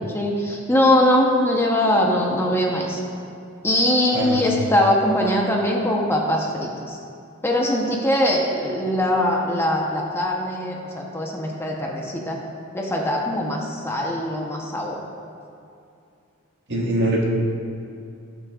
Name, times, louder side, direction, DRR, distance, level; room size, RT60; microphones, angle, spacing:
voice 1, 0.1-3.0 3.6-7.0 7.4-12.4 12.7-15.0, left 1 dB, 10° left, -1 dB, 0.8 m, -21 dB
voice 2, 4.1-4.5 16.7-17.2, right 1 dB, 60° right, -3 dB, 1.6 m, -23 dB
17.0 x 6.2 x 2.4 m, 2.4 s
head